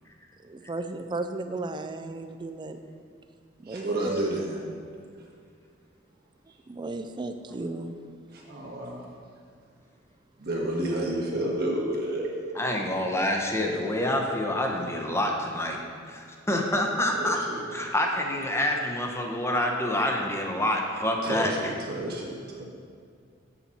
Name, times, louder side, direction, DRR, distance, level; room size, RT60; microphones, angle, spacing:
voice 1, 0.7-2.8 3.6-4.1 6.7-8.0, right 2 dB, 25° right, 8 dB, 0.4 m, -34 dB
voice 2, 3.6-4.6 8.3-9.1 10.4-12.3 17.1-17.7 21.2-22.7, right 1 dB, 55° right, -3 dB, 1.5 m, -30 dB
voice 3, 12.5-15.8 16.0-17.4 17.7-21.5, left 1 dB, 15° left, 2 dB, 0.8 m, -27 dB
7.5 x 7.0 x 4.2 m, 2.3 s
head